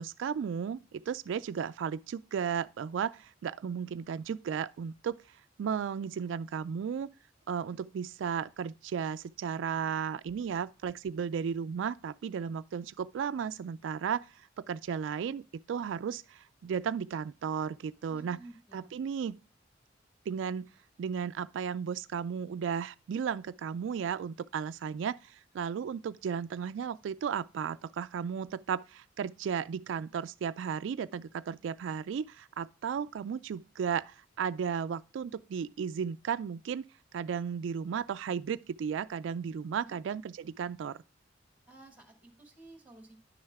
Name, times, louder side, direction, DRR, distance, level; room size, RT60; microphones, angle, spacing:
voice 1, 0.0-5.2 5.6-7.1 7.5-15.4 15.7-18.4 18.7-19.4 20.3-20.7 21.0-36.8 37.1-41.0, right 7 dB, 75° right, 0.3 m, -34 dB
voice 2, 18.1-18.9 39.8-39.9 41.7-43.2, right 2 dB, 10° right, 2.2 m, -53 dB
10.5 x 6.4 x 3.5 m
head